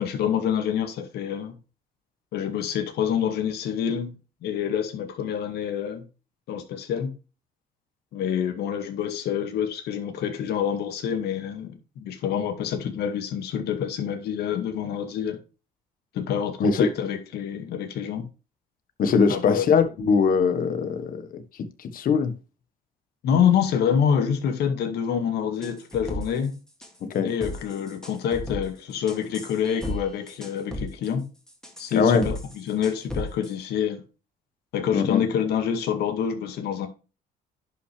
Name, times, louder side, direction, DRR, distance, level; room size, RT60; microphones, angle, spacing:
voice 1, 0.0-1.5 2.3-4.1 4.4-6.0 6.5-7.1 8.1-15.4 16.1-18.2 19.3-19.7 23.2-26.5 27.2-31.3 31.8-34.0 34.7-36.9, left 8 dB, 75° left, 2.1 m, -27 dB
voice 2, 19.0-21.4 21.8-22.3 27.1-27.3 32.0-32.2 34.9-35.2, left 5 dB, 55° left, 1.5 m, -21 dB
sound 1, 25.6-26.5 26.8-27.1 27.4-28.6 29.1-30.0 30.3-31.1 31.5-33.5, equal, 5° left, 2.3 m, -34 dB
11.0 x 5.8 x 3.4 m
cardioid pair, 110°, 17 cm